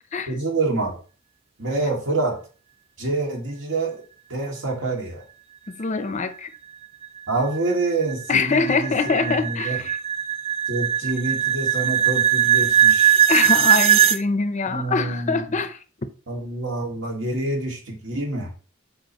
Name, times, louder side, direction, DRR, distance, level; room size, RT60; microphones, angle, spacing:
voice 1, 0.3-1.0 1.6-2.4 3.0-4.0 4.3-5.2 7.3-9.8 10.7-13.2 14.7-15.4 16.3-18.5, right 2 dB, 70° right, 2.0 m, -27 dB
voice 2, 5.7-6.5 8.3-10.0 13.3-15.8, left 4 dB, 40° left, 0.6 m, -24 dB
sound 1, 7.0-14.2, right 10 dB, 30° right, 0.3 m, -20 dB
7.9 x 4.7 x 2.9 m
head